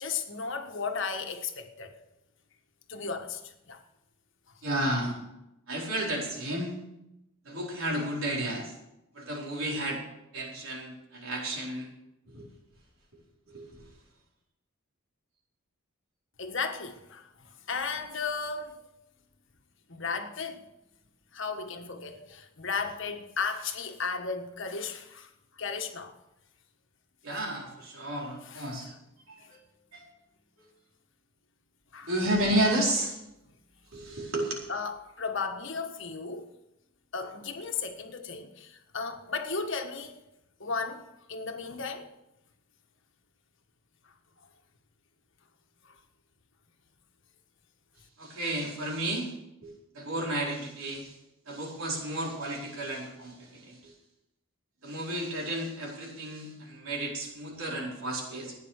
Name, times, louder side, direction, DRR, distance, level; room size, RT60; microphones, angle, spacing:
voice 1, 0.0-1.9 2.9-3.4 3.7-3.8 16.4-18.7 19.9-20.6 21.3-25.3 25.6-26.2 28.5-28.7 29.4-29.5 31.9-32.1 34.7-36.5 37.1-40.2 40.6-41.0 41.3-42.1 45.8-45.9, left 5 dB, 60° left, 1.5 m, -35 dB
voice 2, 4.6-5.2 5.7-6.7 7.4-8.7 9.1-10.0 10.3-11.9 12.3-12.5 13.5-13.7 27.2-28.9 29.3-29.6 29.9-30.0 32.0-33.2 33.9-34.6 48.2-49.3 49.6-51.1 51.5-53.9 54.8-58.6, right 1 dB, 70° right, 4.6 m, -32 dB
15.0 x 9.7 x 6.6 m
head